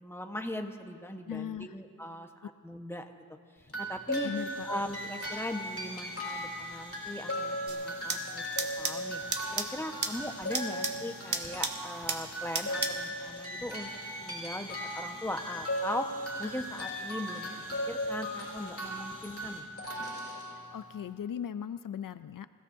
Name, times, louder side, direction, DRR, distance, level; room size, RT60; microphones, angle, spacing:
voice 1, 0.0-3.1 3.8-4.3 4.6-8.4 8.8-13.9 14.2-16.1 16.4-17.5 17.9-19.7, left 1 dB, 5° left, 4 dB, 1.2 m, -39 dB
voice 2, 1.3-1.7 4.2-4.7 20.7-22.5, left 8 dB, 75° left, 13 dB, 0.5 m, -38 dB
sound 1, 3.7-21.1, equal, 45° left, 4.5 m, -38 dB
sound 2, 4.3-19.6, right 1 dB, 45° right, 4.5 m, -52 dB
sound 3, 7.7-13.1, right 3 dB, 65° right, 1.4 m, -36 dB
27.5 x 16.5 x 2.7 m, 2.1 s
wide cardioid pair, 65°, 33 cm